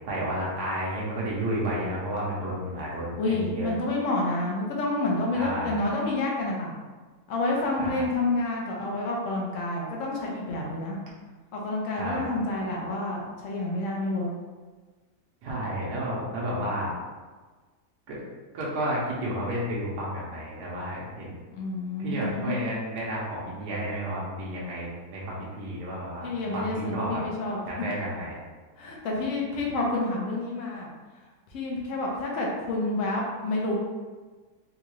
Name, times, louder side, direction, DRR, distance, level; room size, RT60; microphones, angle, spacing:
voice 1, 0.1-3.7 5.3-5.7 7.8-8.0 12.0-12.3 15.4-16.9 18.1-18.2 18.5-21.4 22.0-26.3 26.5-27.2 27.7-28.4, right 1 dB, 75° right, -5 dB, 1.3 m, -31 dB
voice 2, 3.2-6.7 7.3-11.0 11.5-14.3 21.5-22.6 26.2-27.6 28.8-30.9 31.5-33.8, left 2 dB, 60° left, -2 dB, 0.9 m, -29 dB
3.7 x 2.3 x 3.0 m, 1.3 s
omnidirectional pair, 1.7 m